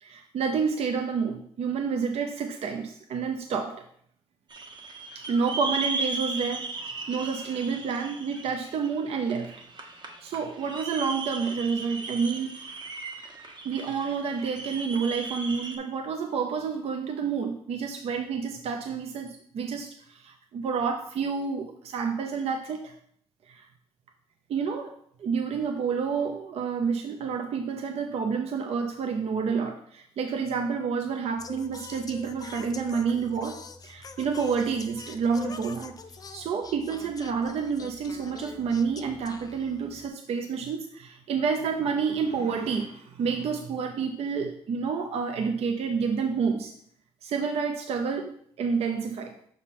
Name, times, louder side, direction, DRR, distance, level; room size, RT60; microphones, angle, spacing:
voice 1, 0.0-3.8 5.1-9.5 10.2-12.7 13.6-22.9 23.5-23.7 24.5-24.9 25.2-35.9 36.3-46.7 47.2-49.3, right 5 dB, 65° right, 4 dB, 0.6 m, -29 dB
sound 1, 4.5-15.8, right 3 dB, 40° right, 1.0 m, -37 dB
Singing, 31.4-40.1, left 4 dB, 35° left, 0.5 m, -44 dB
6.2 x 3.7 x 4.1 m, 0.65 s
cardioid pair, 100°, 11 cm